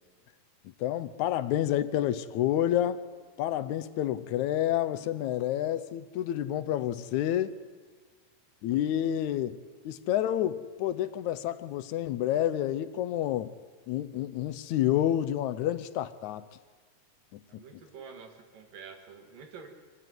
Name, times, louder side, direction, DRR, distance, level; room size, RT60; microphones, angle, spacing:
voice 1, 0.8-3.0 3.4-7.6 8.6-9.6 9.9-13.5 13.9-16.4 17.3-17.6, left 12 dB, 75° left, 13 dB, 1.9 m, -29 dB
voice 2, 17.5-19.7, right 5 dB, 90° right, 5 dB, 3.8 m, -48 dB
25.0 x 14.0 x 9.5 m, 1.5 s
omnidirectional pair, 3.8 m